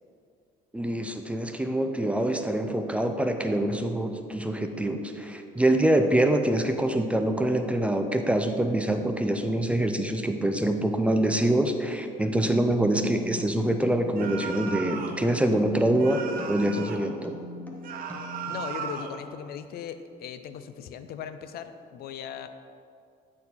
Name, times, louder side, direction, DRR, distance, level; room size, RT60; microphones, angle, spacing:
voice 1, 0.7-16.2 16.5-17.3, right 1 dB, 5° right, 5 dB, 0.4 m, -25 dB
sound 1, 13.0-18.7, left 2 dB, 10° left, 0.8 m, -41 dB
sound 2, 14.2-15.2 16.0-17.1 17.8-19.2, right 6 dB, 55° right, 0.7 m, -36 dB
voice 2, 18.5-22.5, left 8 dB, 65° left, 10 dB, 0.4 m, -38 dB
8.4 x 4.3 x 4.1 m, 2.4 s
cardioid pair, 110°, 17 cm